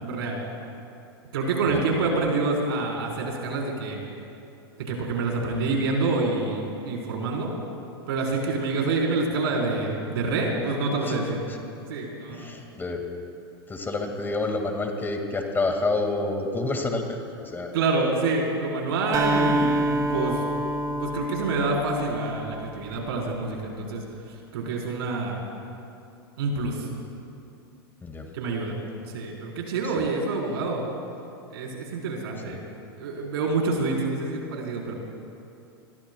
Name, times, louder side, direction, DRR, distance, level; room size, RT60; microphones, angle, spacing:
voice 1, 0.0-0.4 1.3-4.0 4.9-7.5 8.1-11.4 11.9-12.5 17.7-20.4 20.9-24.0 24.5-25.4 26.4-26.9 28.3-28.8 29.1-30.8 31.5-32.6 33.0-34.9, right 3 dB, 70° right, -1 dB, 4.2 m, -27 dB
voice 2, 12.3-13.1 13.7-17.8 28.0-28.3 29.8-30.1 32.5-32.6, left 2 dB, 15° left, 3 dB, 2.0 m, -29 dB
Acoustic guitar, 19.1-23.0, right 1 dB, 25° right, 2.2 m, -27 dB
27.5 x 21.5 x 2.3 m, 2.6 s
hypercardioid pair, 100°, 13 cm